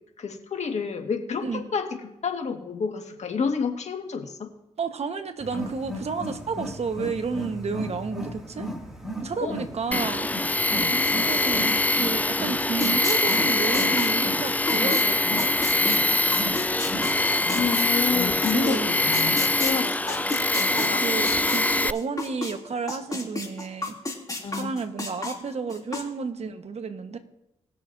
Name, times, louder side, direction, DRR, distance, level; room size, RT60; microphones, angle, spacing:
voice 1, 0.2-4.5 9.4-9.6 10.7-11.0 17.5-20.2 20.5-21.0 24.4-24.7, left 5 dB, 65° left, 4 dB, 1.8 m, -30 dB
voice 2, 4.8-8.7 9.2-10.3 10.9-15.5 16.4-16.6 18.5-18.9 19.6-19.9 20.7-23.9 24.5-27.2, right 5 dB, 55° right, 7 dB, 1.3 m, -31 dB
Wild animals, 5.4-19.7, equal, 5° right, 2.4 m, -36 dB
Tools, 9.9-21.9, left 2 dB, 10° left, 0.4 m, -23 dB
sound 1, 12.8-18.8 19.1-22.5 22.9-26.0, left 2 dB, 30° left, 2.9 m, -32 dB
19.5 x 6.9 x 2.7 m, 0.86 s
supercardioid pair, 45°, 13 cm